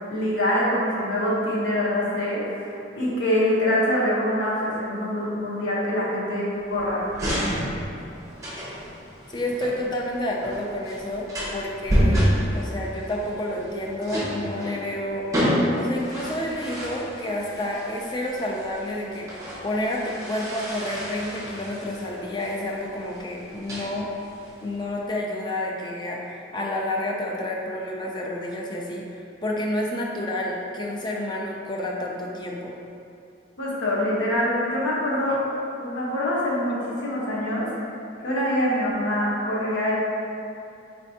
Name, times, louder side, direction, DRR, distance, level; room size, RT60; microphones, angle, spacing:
voice 1, 0.1-7.0 33.6-35.4 35.8-37.7 38.2-39.9, left 1 dB, 85° left, -7 dB, 1.0 m, -24 dB
sound 1, 6.5-25.0, equal, 15° right, 0.7 m, -29 dB
voice 2, 9.3-11.3 11.5-15.2 15.8-19.3 19.6-24.1 24.6-32.7, left 1 dB, 25° left, -2 dB, 0.4 m, -29 dB
4.2 x 3.3 x 2.8 m, 2.7 s
head